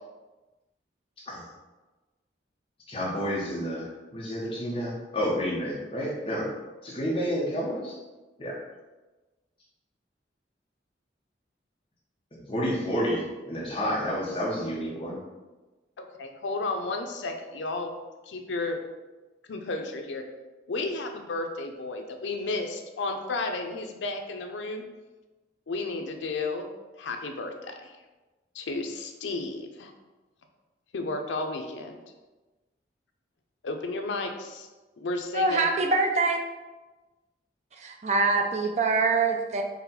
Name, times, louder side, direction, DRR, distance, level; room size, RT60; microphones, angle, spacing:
voice 1, 2.9-3.9 4.1-6.5 6.8-8.0 8.4-8.5 12.5-15.2, equal, 30° left, -5 dB, 0.9 m, -30 dB
voice 2, 16.0-17.9 18.3-18.8 19.5-20.2 20.7-24.8 25.7-26.7 27.0-28.0 28.5-29.9 30.9-32.0 33.6-34.7 35.0-35.7, left 3 dB, 90° left, 4 dB, 0.5 m, -32 dB
voice 3, 35.3-36.4 37.8-39.6, right 3 dB, 40° right, 3 dB, 0.4 m, -24 dB
4.1 x 2.3 x 4.0 m, 1.2 s
head